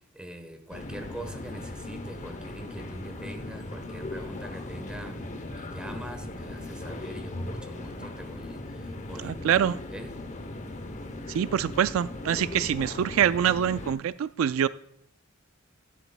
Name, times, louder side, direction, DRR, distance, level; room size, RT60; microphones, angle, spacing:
voice 1, 0.1-10.2, right 1 dB, 5° right, 1.0 m, -43 dB
sound 1, 0.7-13.9, left 2 dB, 35° left, 0.8 m, -38 dB
voice 2, 9.2-9.8 11.3-14.7, right 9 dB, 70° right, 0.3 m, -25 dB
12.0 x 10.0 x 2.2 m
head